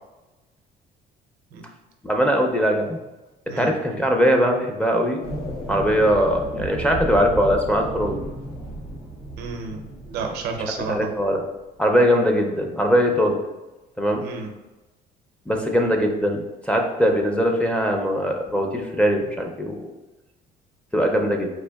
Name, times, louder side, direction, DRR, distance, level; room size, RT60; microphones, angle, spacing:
voice 1, 2.0-3.0 3.6-5.2 5.7-8.2 10.9-11.4 11.8-13.4 14.0-14.2 15.5-19.9 20.9-21.5, equal, 5° left, 2 dB, 0.4 m, -21 dB
sound 1, 5.2-11.4, right 1 dB, 85° left, 0.8 m, -34 dB
voice 2, 9.4-11.1 14.2-14.5, right 4 dB, 75° right, 3 dB, 0.5 m, -31 dB
4.4 x 2.4 x 2.2 m, 1.1 s
cardioid pair, 110°, 17 cm